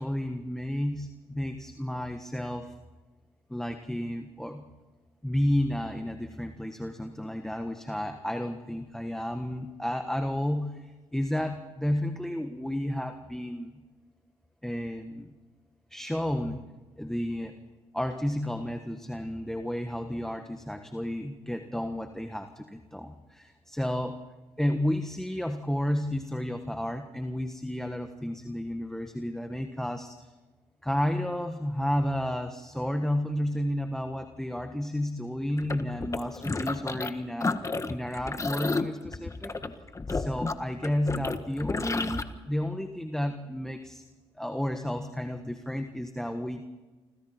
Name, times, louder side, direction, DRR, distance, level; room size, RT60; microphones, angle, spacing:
voice 1, 0.0-2.7 3.5-4.7 5.2-13.7 14.6-15.3 15.9-16.7 17.0-17.5 17.9-24.2 24.6-30.3 30.8-37.5 37.9-39.5 40.1-44.0 44.3-46.6, left 1 dB, 5° left, 6 dB, 1.5 m, -32 dB
sound 1, 35.6-37.1 37.4-42.2, left 3 dB, 30° left, 1.5 m, -31 dB
28.0 x 26.5 x 4.4 m, 1.3 s
cardioid pair, 75°, 11 cm